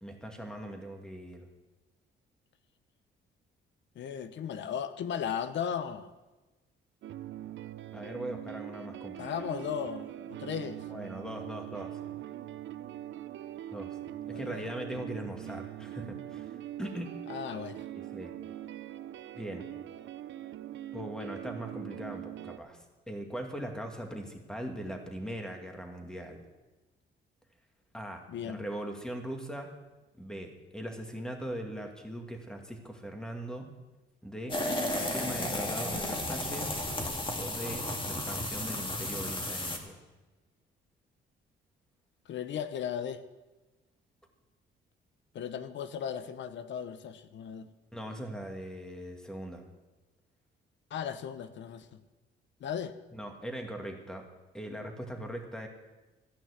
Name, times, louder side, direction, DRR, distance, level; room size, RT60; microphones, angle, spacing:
voice 1, 0.0-1.5 7.9-9.5 10.9-12.0 13.7-14.0 14.3-17.2 17.9-18.3 19.3-19.7 20.9-26.4 27.9-29.7 30.2-33.7 34.2-34.6 34.9-36.7 37.3-40.0 47.9-49.6 53.1-54.3 54.5-55.7, right 1 dB, 5° left, 3 dB, 2.1 m, -40 dB
voice 2, 4.0-6.1 9.2-10.8 14.3-14.7 17.3-17.8 28.3-28.6 42.3-43.2 45.3-47.7 50.9-51.9 52.6-52.9, left 8 dB, 70° left, 12 dB, 0.9 m, -36 dB
sound 1, 7.0-22.6, right 12 dB, 70° right, 0.6 m, -42 dB
sound 2, 34.5-39.8, left 1 dB, 25° left, 2.1 m, -33 dB
14.5 x 5.9 x 9.7 m, 1.1 s
cardioid pair, 90°, 20 cm